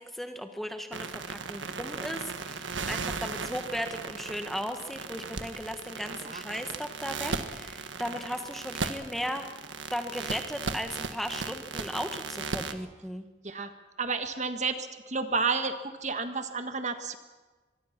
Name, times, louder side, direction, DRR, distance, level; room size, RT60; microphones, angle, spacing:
voice 1, 0.0-9.5 9.9-13.2, equal, ahead, 6 dB, 1.4 m, -36 dB
sound 1, 0.9-12.7, right 4 dB, 85° right, 1.6 m, -37 dB
voice 2, 14.0-17.2, right 4 dB, 40° right, 8 dB, 1.5 m, -31 dB
24.0 x 23.0 x 5.9 m, 1.3 s
head